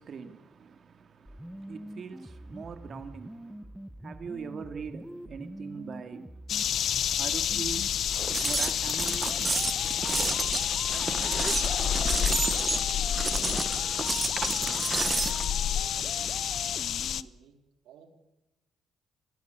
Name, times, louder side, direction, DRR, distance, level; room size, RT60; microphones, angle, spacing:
voice 1, 0.0-6.4 7.1-7.9 8.3-9.2, right 6 dB, 50° right, 2.4 m, -42 dB
sound 1, 1.3-17.3, equal, 5° right, 1.2 m, -44 dB
sound 2, 6.5-17.2, left 9 dB, 65° left, 0.9 m, -29 dB
sound 3, 8.1-15.5, right 3 dB, 25° right, 1.2 m, -31 dB
voice 2, 10.9-14.7 15.0-17.6 17.8-18.1, right 7 dB, 85° right, 4.6 m, -52 dB
28.0 x 21.0 x 8.3 m
cardioid pair, 100°, 0 cm